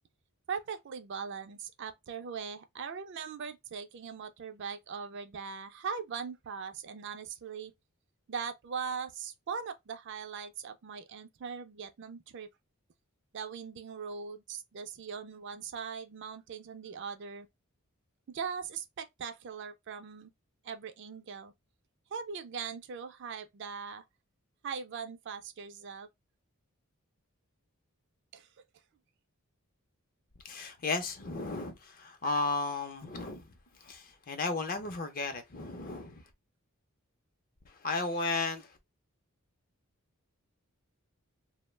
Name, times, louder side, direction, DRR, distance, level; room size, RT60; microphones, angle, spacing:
voice 1, 0.5-7.7 8.3-12.5 13.3-17.5 18.3-20.3 20.6-21.5 22.1-24.1 24.6-26.1 28.3-28.5, right 6 dB, 55° right, 0.4 m, -40 dB
voice 2, 30.4-33.5 33.8-36.2 37.7-38.8, left 3 dB, 40° left, 0.5 m, -34 dB
2.3 x 2.1 x 3.1 m
head